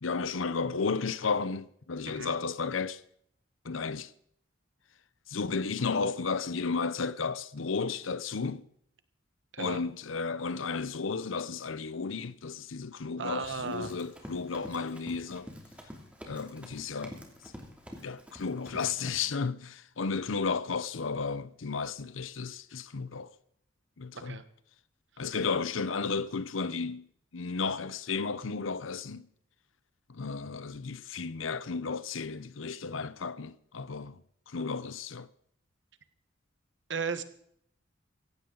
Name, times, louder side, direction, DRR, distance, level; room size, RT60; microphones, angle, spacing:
voice 1, 0.0-3.0 3.6-4.1 5.3-8.7 9.6-15.5 16.3-17.2 18.0-23.3 24.0-24.4 25.2-27.1 27.3-29.3 30.1-35.3, left 4 dB, 85° left, 0.8 m, -33 dB
voice 2, 13.2-13.9 24.1-24.4 25.2-25.4 36.9-37.2, right 5 dB, 65° right, 1.2 m, -35 dB
Run, 13.4-19.2, equal, 5° right, 2.7 m, -48 dB
17.0 x 15.5 x 4.0 m
head